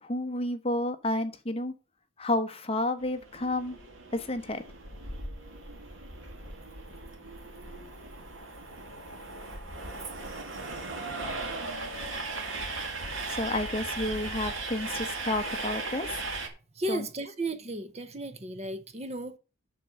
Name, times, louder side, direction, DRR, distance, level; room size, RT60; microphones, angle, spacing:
voice 1, 0.0-1.7 2.2-3.8 4.1-4.6 13.3-16.2 16.9-17.0, left 1 dB, 30° left, 1.0 m, -31 dB
Train, 3.0-16.5, right 3 dB, 70° right, 2.2 m, -37 dB
voice 2, 16.7-19.4, right 1 dB, 30° right, 0.8 m, -34 dB
7.6 x 6.7 x 6.4 m
head